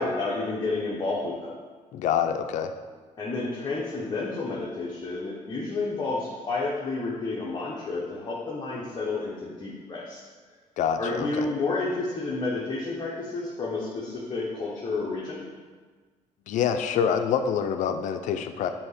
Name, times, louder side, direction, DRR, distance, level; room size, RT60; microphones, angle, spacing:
voice 1, 0.0-1.6 3.2-10.2 11.0-15.4, left 3 dB, 35° left, -5 dB, 0.9 m, -30 dB
voice 2, 1.9-2.7 10.8-11.4 16.5-18.7, left 8 dB, 75° left, 8 dB, 0.5 m, -26 dB
7.2 x 2.9 x 4.9 m, 1.4 s
cardioid pair, 125°, 13 cm